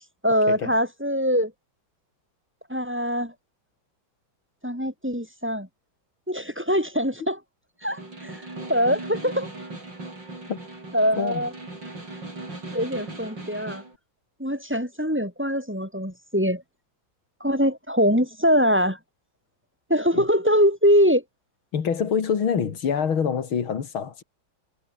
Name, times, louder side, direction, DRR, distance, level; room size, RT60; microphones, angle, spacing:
voice 1, 0.2-1.5 2.7-3.3 4.6-5.7 6.3-7.4 7.8-8.4 8.7-9.5 10.9-11.5 12.7-13.8 14.4-16.6 17.4-19.0 19.9-21.2, equal, 5° right, 7.1 m, -23 dB
Snare drum, 7.8-14.0, right 2 dB, 60° right, 8.2 m, -38 dB
voice 2, 21.7-24.2, left 7 dB, 90° left, 3.0 m, -25 dB
omnidirectional pair, 2.2 m